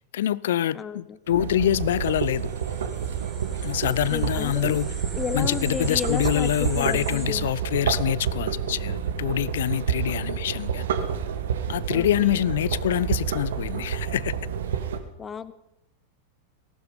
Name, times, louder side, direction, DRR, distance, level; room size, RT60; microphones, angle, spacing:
voice 1, 0.1-2.5 3.6-4.9 5.3-10.9 11.7-14.3, left 12 dB, 60° left, 0.4 m, -25 dB
voice 2, 0.7-1.2 3.8-4.8 5.1-7.5 11.9-12.4 15.2-15.5, left 6 dB, 20° left, 0.9 m, -33 dB
sound 1, 1.3-15.0, right 7 dB, 60° right, 1.4 m, -29 dB
sound 2, 1.9-7.3, right 2 dB, 10° right, 2.5 m, -42 dB
18.0 x 12.0 x 5.2 m
figure-of-eight pair, 90°, 0 cm